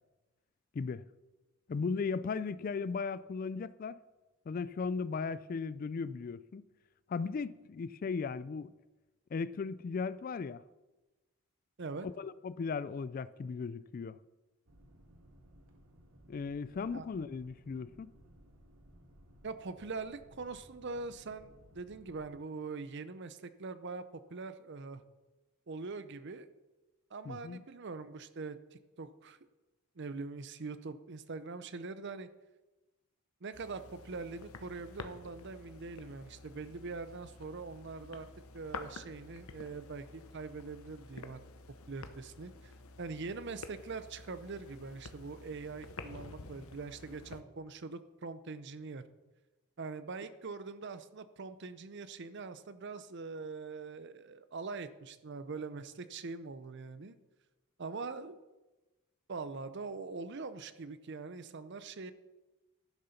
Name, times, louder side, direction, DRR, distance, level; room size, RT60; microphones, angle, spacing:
voice 1, 1.7-4.0 4.5-6.6 7.1-8.7 9.3-10.6 12.0-14.2 16.3-18.1 27.3-27.6, left 5 dB, 40° left, 0.3 m, -37 dB
sound 1, 14.7-22.3, equal, 70° right, 1.6 m, -60 dB
voice 2, 19.4-24.0 24.3-25.0 25.7-26.5 27.1-29.4 30.0-32.3 33.4-38.3 38.5-41.4 41.9-42.7 43.0-49.0 49.8-57.2 57.8-58.4 59.3-62.1, right 4 dB, 55° right, 0.6 m, -43 dB
sound 2, 33.5-47.4, left 3 dB, 80° left, 0.9 m, -50 dB
11.5 x 6.6 x 5.8 m
head